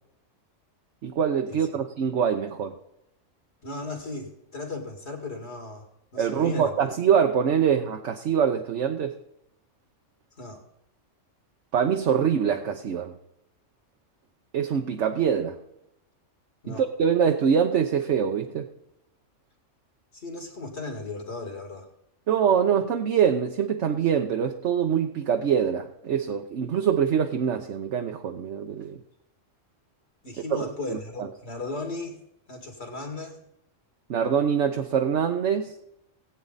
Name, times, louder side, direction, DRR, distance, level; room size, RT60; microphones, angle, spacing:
voice 1, 1.0-2.7 6.2-9.1 11.7-13.1 14.5-15.6 16.7-18.7 22.3-29.0 30.9-31.3 34.1-35.7, right 7 dB, 65° right, 5 dB, 1.1 m, -24 dB
voice 2, 3.6-6.7 10.4-10.6 16.6-16.9 20.1-21.9 30.2-32.2 32.5-33.4, left 2 dB, 55° left, 2 dB, 2.6 m, -36 dB
18.5 x 8.5 x 4.0 m, 0.82 s
omnidirectional pair, 1.3 m